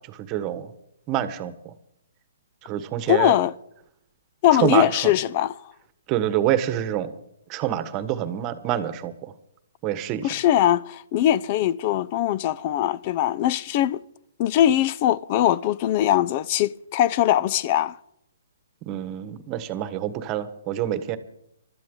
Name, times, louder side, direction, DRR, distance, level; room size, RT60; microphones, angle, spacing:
voice 1, 0.1-0.7 1.1-1.7 2.6-3.3 4.6-5.1 6.1-7.1 7.5-9.3 9.8-10.3 18.8-21.2, right 11 dB, 25° right, 1.3 m, -26 dB
voice 2, 3.1-3.5 4.4-5.5 10.2-14.0 14.4-18.0, left 12 dB, 35° left, 0.6 m, -21 dB
24.5 x 12.5 x 3.8 m
hypercardioid pair, 140°, 0 cm